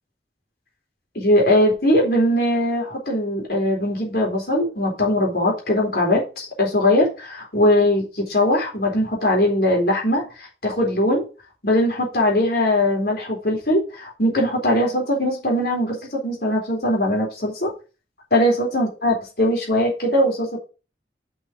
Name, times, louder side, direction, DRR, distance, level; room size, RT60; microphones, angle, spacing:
voice 1, 1.1-11.2 11.6-17.7 18.3-20.6, left 1 dB, 60° left, -1 dB, 3.8 m, -20 dB
6.3 x 5.9 x 6.0 m, 0.32 s
head